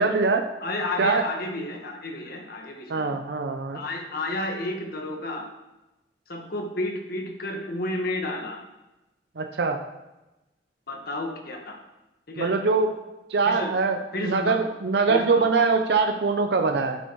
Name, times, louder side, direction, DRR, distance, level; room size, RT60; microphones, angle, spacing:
voice 1, 0.0-0.4 1.0-1.2 2.9-3.8 9.4-9.8 12.4-13.0 13.3-17.0, right 4 dB, 65° right, 5 dB, 0.6 m, -23 dB
voice 2, 0.6-3.2 3.7-5.5 6.3-8.6 10.9-11.8 12.3-12.5 13.4-13.7 14.1-14.6 15.1-15.5, left 1 dB, 55° left, 2 dB, 1.4 m, -31 dB
12.5 x 7.9 x 3.1 m, 1.0 s
head